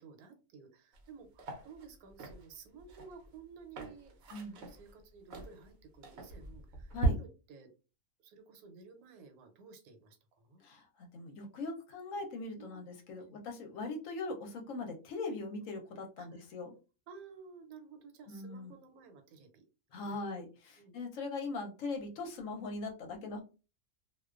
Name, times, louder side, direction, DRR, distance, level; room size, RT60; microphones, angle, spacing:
voice 1, 0.0-7.7 8.2-10.6 12.6-12.9 13.2-13.4 16.2-16.4 17.1-19.6 19.9-20.2 20.8-20.9, right 5 dB, 80° right, 6 dB, 1.1 m, -54 dB
sound 1, 0.9-1.1 1.4-7.1, right 3 dB, 65° right, 0.7 m, -38 dB
voice 2, 4.3-4.6 6.9-7.2 10.6-16.7 18.3-18.7 19.9-23.4, left 3 dB, 70° left, 3 dB, 0.9 m, -41 dB
2.3 x 2.2 x 2.3 m, 0.33 s
omnidirectional pair, 1.5 m